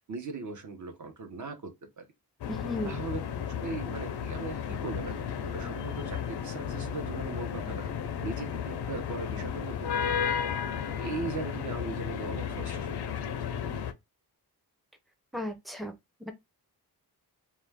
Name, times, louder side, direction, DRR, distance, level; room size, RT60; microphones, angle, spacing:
voice 1, 0.1-2.0 2.8-7.9 8.2-10.3 11.0-13.1, right 3 dB, 50° right, 0.8 m, -39 dB
sound 1, 2.4-13.9, left 8 dB, 80° left, 0.5 m, -33 dB
voice 2, 2.5-3.0 15.3-15.9 16.2-16.3, left 1 dB, ahead, 0.5 m, -35 dB
2.4 x 2.2 x 3.3 m
wide cardioid pair, 115°, 40 cm